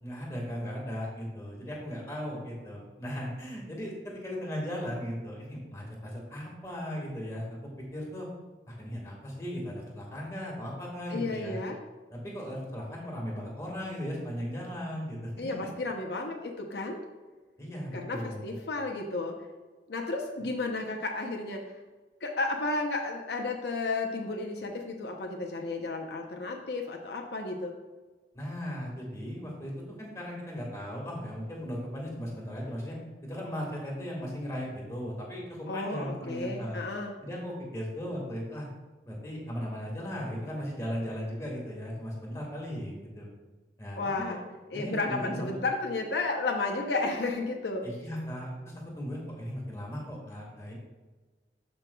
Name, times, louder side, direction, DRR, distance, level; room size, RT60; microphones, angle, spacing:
voice 1, 0.0-7.6 7.9-8.3 8.7-11.6 12.1-15.4 17.6-18.5 28.3-29.7 30.0-33.0 33.2-36.8 37.2-38.7 39.0-43.3 43.8-44.0 44.3-44.4 44.7-45.5 47.8-50.7, equal, 15° left, -3 dB, 1.7 m, -37 dB
voice 2, 11.1-11.8 15.4-17.0 17.9-19.4 19.9-21.6 22.2-27.7 35.7-37.1 44.0-44.4 44.7-47.8, left 3 dB, 75° left, 2 dB, 0.7 m, -32 dB
12.0 x 5.3 x 2.3 m, 1.3 s
head